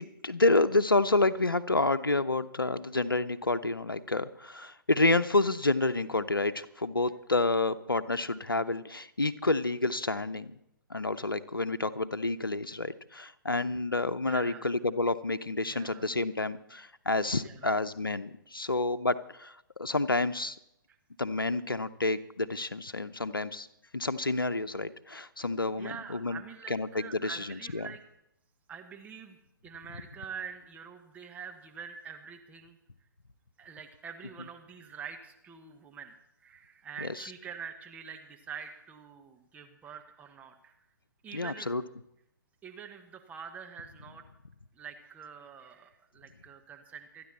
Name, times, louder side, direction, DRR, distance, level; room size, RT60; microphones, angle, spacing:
voice 1, 0.0-10.6 10.9-20.6 21.2-23.7 23.9-26.4 26.7-27.9 37.0-37.3 41.3-41.8, left 2 dB, 85° left, 12 dB, 0.9 m, -29 dB
voice 2, 14.3-14.7 15.7-16.0 17.4-17.7 20.9-21.0 25.8-28.0 28.7-29.4 29.6-32.8 33.6-36.1 36.4-40.8 41.2-41.7 42.6-44.2 44.7-47.3, right 6 dB, 15° right, 3 dB, 1.3 m, -45 dB
27.5 x 10.5 x 4.2 m, 0.79 s
figure-of-eight pair, 125°, 11 cm